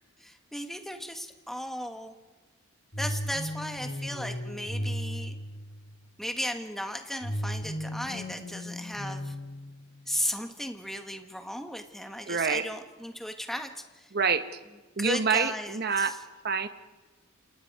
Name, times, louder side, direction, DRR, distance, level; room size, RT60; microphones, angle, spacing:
voice 1, 0.2-2.1 3.0-5.4 6.2-9.3 10.1-14.1 15.0-16.2, equal, ahead, 6 dB, 1.4 m, -36 dB
sound 1, 2.9-6.1 7.2-10.1, equal, 45° left, 2.8 m, -36 dB
voice 2, 12.3-12.6 14.1-14.4 15.0-16.2 16.4-16.7, right 5 dB, 45° right, 10 dB, 1.2 m, -26 dB
28.5 x 28.0 x 4.8 m, 1.3 s
head